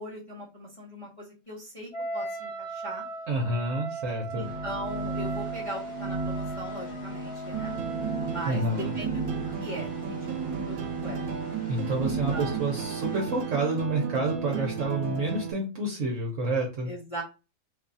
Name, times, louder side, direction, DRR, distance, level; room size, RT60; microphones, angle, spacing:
voice 1, 0.0-3.0 4.3-7.7 8.3-9.2 9.6-9.9 10.4-11.3 12.0-12.6 16.8-17.2, right 1 dB, 30° left, -5 dB, 0.7 m, -39 dB
Wind instrument woodwind instrument, 1.9-8.5, right 2 dB, 55° left, 1.1 m, -37 dB
voice 2, 3.3-4.4 8.4-8.9 11.7-16.9, right 2 dB, 65° right, 0 dB, 1.1 m, -29 dB
sound 1, 4.3-13.4, right 2 dB, 40° right, 1.2 m, -36 dB
sound 2, 7.5-15.5, right 7 dB, 85° right, 1.1 m, -34 dB
2.7 x 2.3 x 3.8 m, 0.31 s
omnidirectional pair, 1.5 m